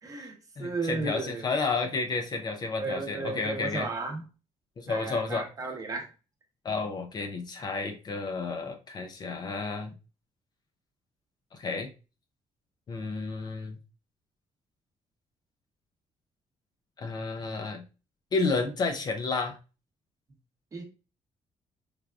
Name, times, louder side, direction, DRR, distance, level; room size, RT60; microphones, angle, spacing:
voice 1, 0.0-1.5 2.8-4.2 4.9-6.1 20.7-20.8, right 3 dB, 30° right, 0.8 m, -34 dB
voice 2, 0.6-3.9 4.8-5.5 6.6-9.9 11.5-11.9 12.9-13.8 17.0-17.8 18.3-19.6, left 4 dB, 35° left, 0.4 m, -31 dB
3.5 x 3.4 x 2.3 m
cardioid pair, 150°, 12 cm